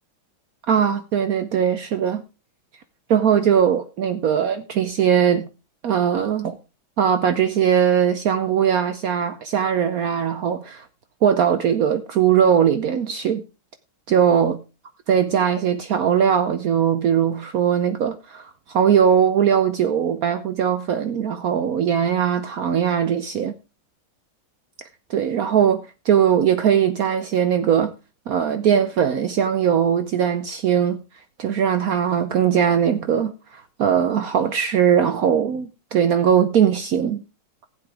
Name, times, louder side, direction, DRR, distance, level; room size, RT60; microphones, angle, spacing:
voice 1, 0.7-2.2 3.1-5.5 5.8-6.6 7.0-10.8 11.2-13.4 14.1-14.6 15.1-23.5 25.1-27.9 28.3-31.0 31.4-37.2, right 8 dB, 75° right, 0.8 m, -20 dB
15.0 x 8.1 x 3.4 m
omnidirectional pair, 2.3 m